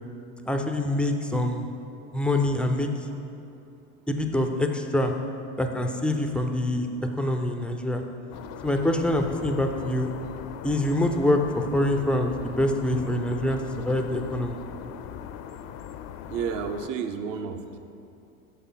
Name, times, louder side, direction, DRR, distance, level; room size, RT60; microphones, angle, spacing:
voice 1, 0.5-1.7 2.1-2.9 4.1-5.1 5.6-6.9 7.2-8.0 8.6-10.1 10.6-13.6 13.8-14.6, left 1 dB, 5° left, 4 dB, 0.3 m, -25 dB
sound 1, 8.3-16.9, left 9 dB, 55° left, 0.5 m, -40 dB
voice 2, 16.3-17.8, right 6 dB, 55° right, 7 dB, 0.7 m, -31 dB
8.7 x 6.6 x 3.9 m, 2.7 s
hypercardioid pair, 85°, 41 cm